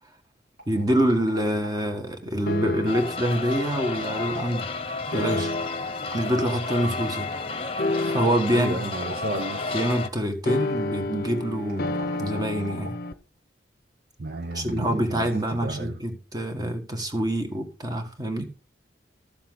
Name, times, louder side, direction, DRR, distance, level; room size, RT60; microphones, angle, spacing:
sound 1, 0.6-2.2 3.0-4.9 5.8-7.7 8.7-10.0 11.6-13.2 14.4-15.8, right 1 dB, 85° right, 6.1 m, -44 dB
voice 1, 0.7-4.7 5.1-5.5 6.1-7.3 8.0-8.8 9.7-13.0 14.5-18.5, right 1 dB, 20° right, 5 dB, 1.8 m, -26 dB
sound 2, 2.5-3.2 5.1-5.9 7.8-8.6 10.5-13.1, left 2 dB, 55° left, 0.7 m, -29 dB
sound 3, 2.9-10.1, left 3 dB, 35° left, 1.0 m, -31 dB
voice 2, 8.5-9.8 14.2-16.0, right 2 dB, 55° right, 6 dB, 1.0 m, -32 dB
13.5 x 7.3 x 4.0 m, 0.34 s
head